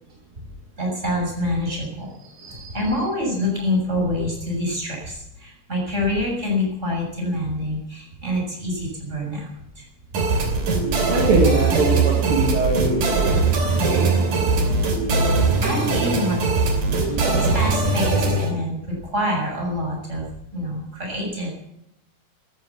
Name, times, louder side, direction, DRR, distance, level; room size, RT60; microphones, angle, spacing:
voice 1, 0.8-2.1 2.7-9.5 9.8-9.9 15.6-16.4 16.7-21.5, left 1 dB, 20° right, -2 dB, 7.3 m, -26 dB
voice 2, 2.2-2.9 10.2-16.0 16.8-18.4, right 3 dB, 45° right, 1 dB, 2.5 m, -26 dB
sound 1, 10.1-18.5, right 3 dB, 65° right, 4.5 m, -21 dB
14.5 x 13.5 x 7.1 m, 0.82 s
omnidirectional pair, 4.1 m